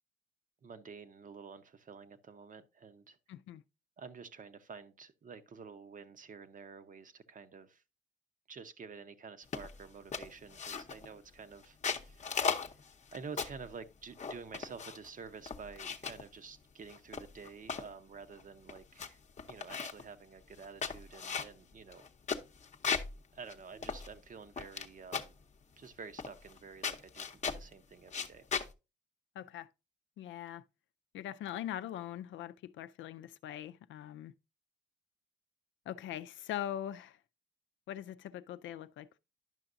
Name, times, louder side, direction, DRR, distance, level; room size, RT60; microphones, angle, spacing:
voice 1, 0.6-3.2 4.0-7.8 8.5-12.4 12.7-12.8 13.1-19.2 19.5-22.0 23.3-25.4 25.8-27.3 27.5-28.5, right 5 dB, 40° right, 0.8 m, -50 dB
voice 2, 3.3-3.6 29.4-29.7 30.2-30.6 31.1-34.3 35.9-37.2 37.9-39.2, left 11 dB, 75° left, 0.5 m, -42 dB
sound 1, 9.5-9.8 10.1-11.1 11.6-13.7 14.2-15.1 15.5-16.2 16.9-17.9 18.4-18.5 18.7-19.1 19.4-20.1 20.6-23.2 23.5-23.6 23.8-24.9 25.1-25.4 26.2-26.6 26.8-27.7 28.1-28.7, left 6 dB, 35° left, 0.8 m, -37 dB
11.0 x 5.7 x 2.5 m
cardioid pair, 90°, 20 cm